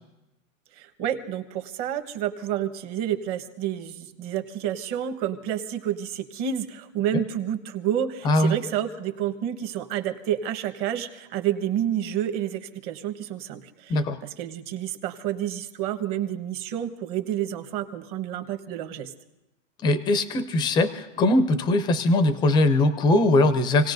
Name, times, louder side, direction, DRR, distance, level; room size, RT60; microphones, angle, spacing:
voice 1, 0.7-19.1, right 10 dB, 40° right, 8 dB, 1.3 m, -29 dB
voice 2, 19.8-23.9, left 2 dB, 10° left, 11 dB, 0.4 m, -21 dB
28.0 x 18.0 x 2.6 m, 0.98 s
supercardioid pair, 150°, 39 cm